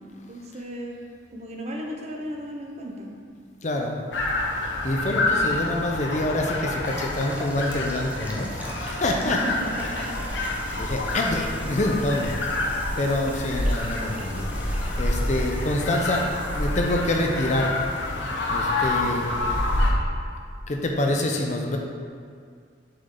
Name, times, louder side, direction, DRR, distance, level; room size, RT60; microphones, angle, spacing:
voice 1, 0.3-1.0 1.3-3.1 9.3-10.2, equal, 35° right, 0 dB, 0.8 m, -34 dB
voice 2, 3.6-4.0 4.8-9.4 9.8-9.9 10.8-12.4 13.0-16.3 16.5-17.7 18.5-19.4 20.7-21.8, left 1 dB, 40° left, 1 dB, 0.6 m, -26 dB
sound 1, 4.1-19.9, left 2 dB, 80° left, 1.0 m, -27 dB
sound 2, 6.8-18.8, right 1 dB, 10° right, 0.6 m, -45 dB
6.6 x 6.0 x 3.8 m, 2.2 s
head